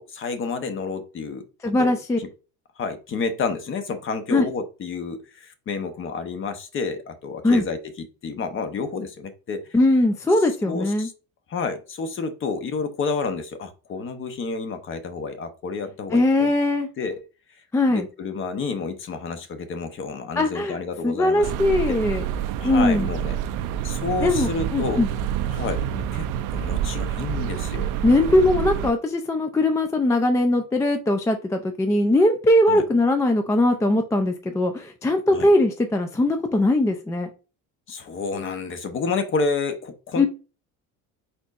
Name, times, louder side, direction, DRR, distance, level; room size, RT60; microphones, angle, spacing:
voice 1, 0.0-2.3 2.8-9.6 10.4-11.1 11.5-16.5 17.0-17.2 17.9-21.5 21.9-22.0 22.6-23.4 23.8-25.0 25.5-27.9 32.7-32.8 35.3-35.5 37.9-40.3, left 4 dB, 35° left, 9 dB, 0.8 m, -30 dB
voice 2, 1.6-2.2 4.3-4.4 7.4-7.6 9.7-11.1 16.1-16.9 17.7-18.0 20.4-20.8 21.0-22.2 22.6-23.1 24.2-25.1 28.0-37.3 40.2-40.3, left 1 dB, 10° left, 6 dB, 0.3 m, -20 dB
sound 1, 21.4-28.9, right 9 dB, 65° right, 0.5 m, -27 dB
4.3 x 4.1 x 2.4 m, 0.33 s
cardioid pair, 140°, 35 cm